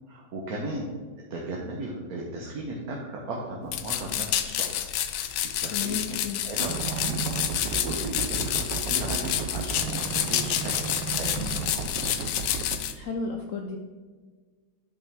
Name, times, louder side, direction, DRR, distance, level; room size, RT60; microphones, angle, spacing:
voice 1, 0.1-0.9 1.3-6.2 6.4-11.9, right 2 dB, 60° right, -2 dB, 1.5 m, -36 dB
sound 1, 3.7-12.9, left 11 dB, 90° left, 1.2 m, -29 dB
voice 2, 5.7-6.4 12.9-13.8, left 5 dB, 65° left, 2 dB, 0.9 m, -33 dB
sound 2, 6.6-12.8, right 6 dB, 90° right, 1.3 m, -34 dB
10.0 x 5.6 x 3.5 m, 1.5 s
omnidirectional pair, 1.8 m